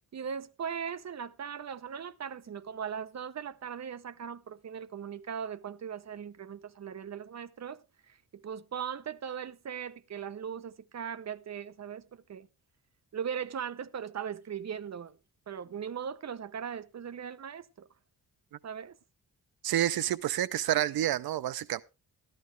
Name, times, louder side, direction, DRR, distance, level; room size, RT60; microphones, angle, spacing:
voice 1, 0.1-12.5 13.1-15.2 15.5-17.9 18.6-19.0, right 7 dB, 50° right, 0.7 m, -39 dB
voice 2, 19.6-21.8, right 12 dB, 80° right, 0.5 m, -29 dB
13.0 x 11.5 x 3.2 m
cardioid pair, 100°, 36 cm